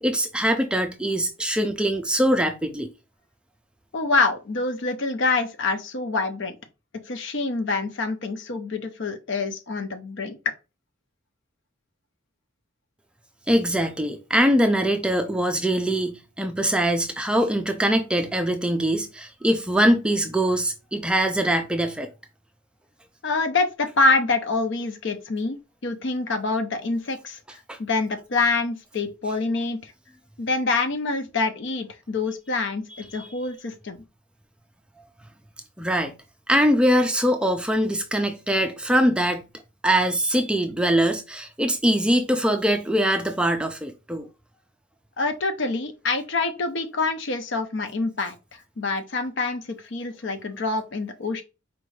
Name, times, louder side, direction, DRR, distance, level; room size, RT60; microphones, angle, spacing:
voice 1, 0.0-2.9 13.5-22.1 27.7-27.8 33.1-33.3 35.8-36.2 36.5-39.4 39.8-44.3, right 1 dB, 5° right, 0.4 m, -22 dB
voice 2, 3.9-6.6 7.1-10.4 23.2-25.6 25.8-27.4 27.8-29.9 30.4-34.0 45.2-51.4, left 3 dB, 60° left, 0.6 m, -26 dB
4.5 x 2.6 x 3.1 m
head